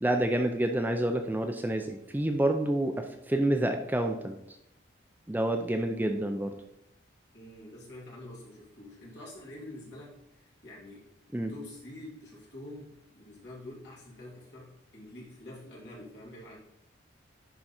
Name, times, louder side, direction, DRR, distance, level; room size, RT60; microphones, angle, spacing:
voice 1, 0.0-4.4 5.3-6.5 11.3-11.5, right 1 dB, 10° right, 5 dB, 0.4 m, -28 dB
voice 2, 7.3-11.0 11.5-16.6, left 1 dB, 60° left, -5 dB, 2.7 m, -47 dB
10.5 x 3.8 x 4.3 m, 0.82 s
head